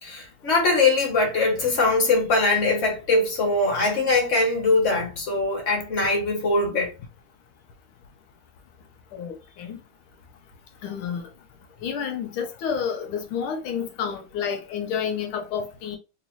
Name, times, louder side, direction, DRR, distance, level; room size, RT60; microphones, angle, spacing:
voice 1, 0.0-6.9, left 3 dB, 35° left, 1.8 m, -22 dB
voice 2, 9.1-9.8 10.8-11.3 11.8-16.0, left 7 dB, 85° left, 1.6 m, -30 dB
5.9 x 2.8 x 2.8 m
omnidirectional pair, 2.3 m